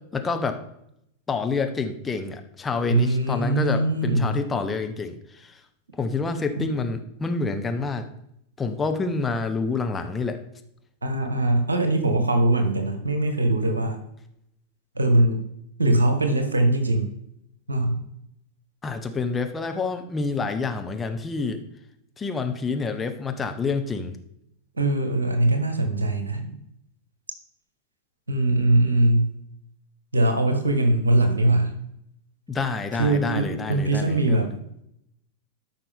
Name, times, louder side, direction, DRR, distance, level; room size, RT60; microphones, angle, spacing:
voice 1, 0.1-0.6 1.3-5.5 6.0-8.0 8.6-10.4 18.8-21.6 22.2-24.1 32.5-34.6, left 4 dB, 15° left, 6 dB, 1.0 m, -28 dB
voice 2, 2.9-4.4 6.5-6.7 11.0-14.0 14.9-15.4 15.8-17.1 17.7-18.0 24.8-26.5 28.3-29.3 30.1-31.8 33.0-34.5, right 2 dB, 80° right, 7 dB, 1.4 m, -21 dB
13.5 x 5.9 x 3.6 m, 0.77 s
figure-of-eight pair, 90°, 0 cm